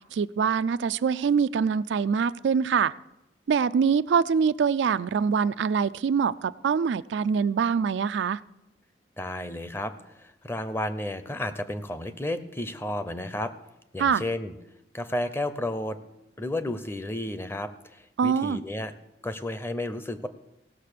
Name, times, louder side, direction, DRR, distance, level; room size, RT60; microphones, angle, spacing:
voice 1, 0.1-2.9 3.5-8.4 14.0-14.2 18.2-18.6, right 6 dB, 85° right, 15 dB, 0.4 m, -24 dB
voice 2, 9.2-13.5 13.9-14.5 14.9-16.0 16.4-18.9 19.2-20.3, left 1 dB, 15° left, 11 dB, 0.6 m, -32 dB
17.0 x 6.6 x 6.7 m, 0.93 s
head